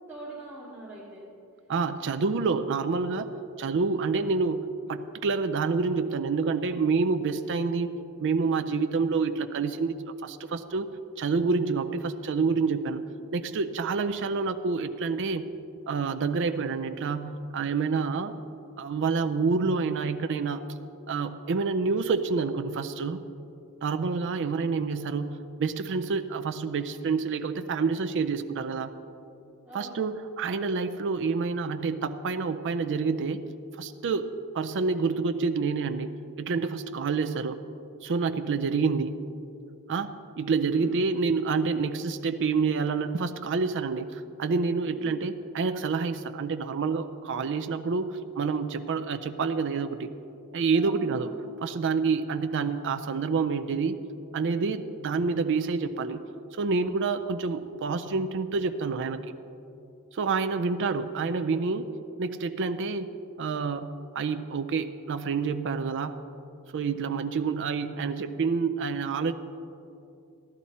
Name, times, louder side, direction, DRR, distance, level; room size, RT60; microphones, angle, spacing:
voice 1, 0.1-1.2 29.6-30.1 40.7-40.9 50.7-51.5, right 2 dB, 10° right, -11 dB, 2.3 m, -44 dB
voice 2, 1.7-3.3 3.6-4.6 4.9-7.9 8.2-10.9 11.2-13.0 13.3-15.4 15.9-18.3 18.8-20.6 21.1-23.2 23.8-28.9 29.7-33.4 33.8-36.1 36.4-37.6 38.0-39.1 39.9-50.1 50.5-51.3 51.6-54.0 54.3-56.2 56.5-59.2 60.1-61.9 62.2-63.1 63.4-66.2 66.7-69.3, right 4 dB, 55° right, 9 dB, 0.5 m, -28 dB
14.5 x 11.5 x 4.2 m, 2.7 s
head